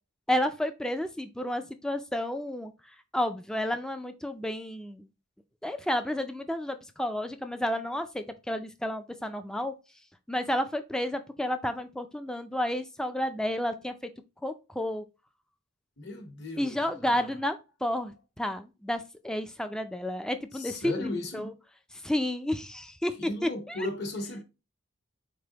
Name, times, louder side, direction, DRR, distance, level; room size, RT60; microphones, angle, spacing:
voice 1, 0.3-2.7 3.1-5.1 5.6-9.7 10.3-13.9 14.4-15.0 16.6-17.6 17.8-21.5 22.0-23.1 23.4-23.8, left 1 dB, 5° left, 0.3 m, -31 dB
voice 2, 16.0-17.4 20.5-21.5 23.2-24.4, left 2 dB, 55° left, 1.0 m, -36 dB
4.5 x 3.4 x 2.8 m
head